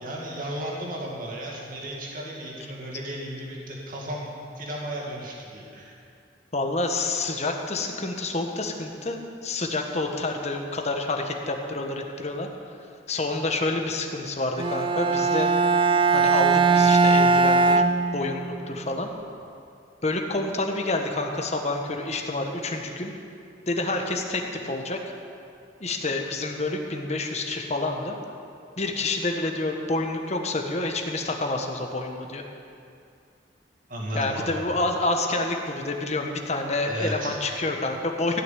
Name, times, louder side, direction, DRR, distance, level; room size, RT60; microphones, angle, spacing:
voice 1, 0.0-6.0 33.9-34.5 36.9-37.4, right 1 dB, 50° right, -3 dB, 2.4 m, -34 dB
voice 2, 6.5-12.5 13.1-15.5 16.1-17.8 18.1-19.1 20.0-23.1 23.7-25.1 25.8-28.2 28.8-32.4 34.1-38.4, left 2 dB, 40° left, 3 dB, 1.3 m, -28 dB
Bowed string instrument, 14.6-18.7, right 4 dB, 30° right, 0.4 m, -20 dB
15.5 x 6.7 x 9.2 m, 2.4 s
head